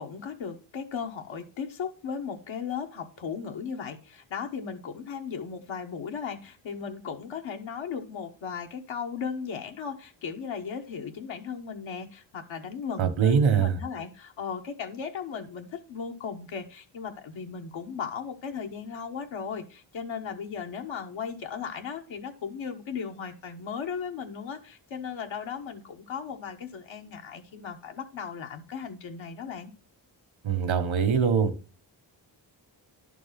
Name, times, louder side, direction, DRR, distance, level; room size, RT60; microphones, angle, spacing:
voice 1, 0.0-29.7, left 6 dB, 90° left, 4 dB, 1.4 m, -36 dB
voice 2, 13.0-13.8 30.4-31.5, right 6 dB, 85° right, 9 dB, 1.4 m, -23 dB
11.0 x 4.6 x 5.9 m, 0.35 s
wide cardioid pair, 115°, 45 cm